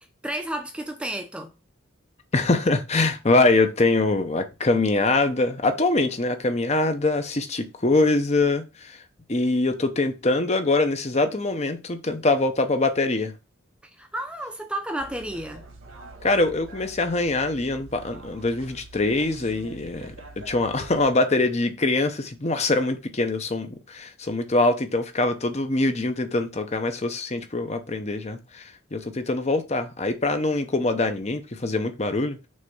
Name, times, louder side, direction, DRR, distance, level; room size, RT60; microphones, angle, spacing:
voice 1, 0.2-1.5 13.9-15.6, right 1 dB, 5° right, 0.6 m, -32 dB
voice 2, 2.3-9.0 9.3-13.3 16.2-20.1 20.5-32.5, left 2 dB, 30° left, 0.7 m, -23 dB
sound 1, 15.0-21.1, right 2 dB, 85° right, 1.5 m, -45 dB
6.4 x 3.4 x 5.4 m
head